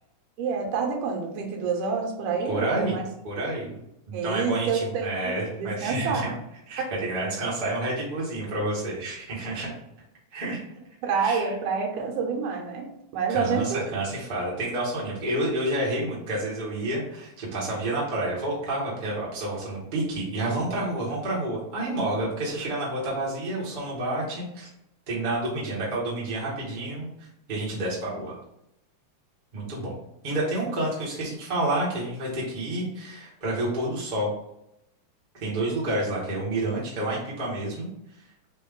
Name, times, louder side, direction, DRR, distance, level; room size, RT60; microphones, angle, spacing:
voice 1, 0.4-3.1 4.1-6.3 11.0-14.0, right 5 dB, 80° right, 2 dB, 2.3 m, -28 dB
voice 2, 2.5-3.0 3.2-3.7 4.1-6.3 6.7-9.7 10.3-10.6 11.2-11.5 13.3-24.7 25.1-27.1 27.5-28.4 29.5-30.0 30.2-34.3 35.3-37.9, right 1 dB, 35° right, -6 dB, 0.7 m, -29 dB
5.3 x 2.6 x 3.7 m, 0.82 s
omnidirectional pair, 3.7 m